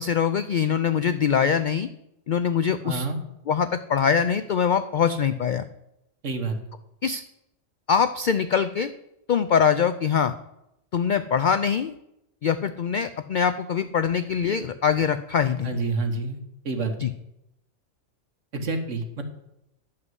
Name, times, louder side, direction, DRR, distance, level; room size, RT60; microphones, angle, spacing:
voice 1, 0.0-1.9 2.3-3.1 3.5-5.6 7.0-7.2 7.9-8.9 9.3-10.3 10.9-11.9 12.4-15.8 17.0-17.1, left 7 dB, 70° left, 11 dB, 0.4 m, -23 dB
voice 2, 2.8-3.2 6.2-6.6 15.6-16.4 16.6-17.1 18.5-19.2, right 3 dB, 70° right, 5 dB, 1.7 m, -28 dB
11.0 x 5.7 x 7.9 m, 0.85 s
omnidirectional pair, 1.3 m